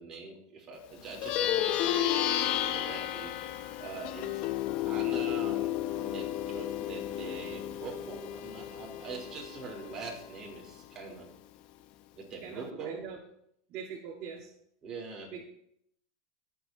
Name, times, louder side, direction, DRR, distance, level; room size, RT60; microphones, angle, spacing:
voice 1, 0.0-2.2 2.5-4.4 4.9-5.8 6.0-11.3 12.1-13.0 14.8-15.3, right 4 dB, 25° right, -2 dB, 3.8 m, -43 dB
Plucked string instrument, 1.1-10.8, left 12 dB, 45° left, 0.8 m, -32 dB
voice 2, 12.4-13.2 13.7-14.5 15.3-15.4, right 7 dB, 45° right, -3 dB, 2.0 m, -42 dB
19.5 x 7.8 x 3.0 m, 0.70 s
supercardioid pair, 135°, 2 cm